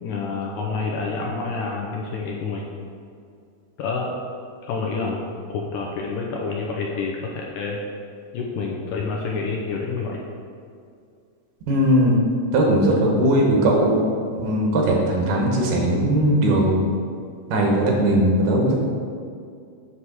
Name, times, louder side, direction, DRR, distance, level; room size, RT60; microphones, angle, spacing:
voice 1, 0.0-2.7 3.8-4.1 4.6-5.2 5.5-7.8 8.3-10.2, left 4 dB, 80° left, -1 dB, 1.8 m, -28 dB
voice 2, 11.7-12.1 12.5-14.1 14.3-16.8 17.5-18.7, right 1 dB, 80° right, -1 dB, 2.7 m, -19 dB
7.9 x 2.8 x 6.0 m, 2.3 s
omnidirectional pair, 3.8 m